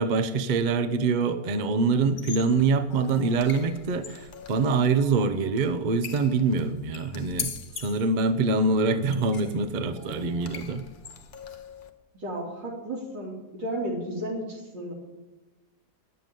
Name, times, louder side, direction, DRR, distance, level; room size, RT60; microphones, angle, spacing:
voice 1, 0.0-7.5 7.8-10.9, right 4 dB, 60° right, 9 dB, 0.4 m, -25 dB
sound 1, 2.1-11.9, left 6 dB, 60° left, 0.5 m, -42 dB
voice 2, 12.2-14.9, right 1 dB, 85° right, -2 dB, 3.7 m, -33 dB
9.9 x 6.9 x 9.1 m, 1.1 s
omnidirectional pair, 1.9 m